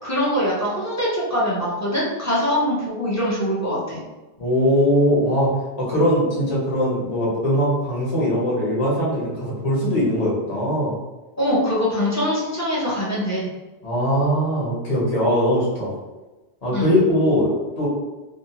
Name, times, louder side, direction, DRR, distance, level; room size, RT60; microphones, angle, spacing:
voice 1, 0.0-4.0 11.4-13.5 16.7-16.9, equal, 20° left, -8 dB, 0.6 m, -23 dB
voice 2, 4.4-5.5 5.8-11.0 13.8-15.9 16.6-17.9, equal, 40° left, -6 dB, 1.0 m, -21 dB
2.6 x 2.1 x 2.8 m, 1.1 s
omnidirectional pair, 1.1 m